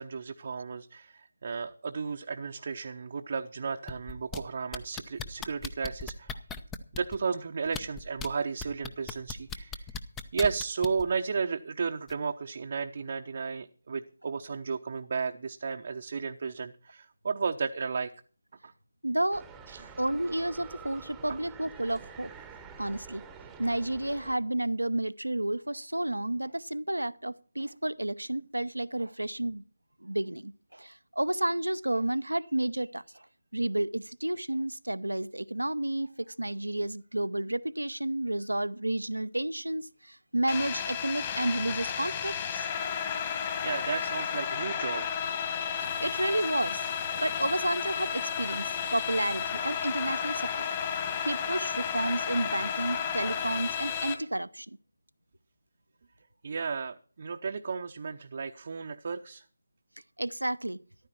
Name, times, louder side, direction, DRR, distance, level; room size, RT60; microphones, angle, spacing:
voice 1, 0.0-6.4 6.9-9.9 10.3-18.1 18.6-18.7 19.7-19.9 21.3-21.4 43.3-45.1 56.4-59.4, right 5 dB, 45° right, 0.8 m, -34 dB
sound 1, 3.9-4.4 4.7-7.2 7.7-8.3 8.6-11.0 12.1-12.2, left 6 dB, 10° left, 0.6 m, -37 dB
voice 2, 19.0-19.5 20.0-22.3 22.8-23.2 23.6-29.6 30.0-33.3 33.5-42.6 45.8-46.9 47.2-50.7 51.2-54.8 60.2-60.8, right 1 dB, 85° right, 0.8 m, -31 dB
sound 2, 19.3-24.4, right 6 dB, 5° right, 1.0 m, -48 dB
sound 3, 40.5-54.2, left 7 dB, 25° left, 1.9 m, -32 dB
14.0 x 12.0 x 4.4 m
figure-of-eight pair, 155°, 0 cm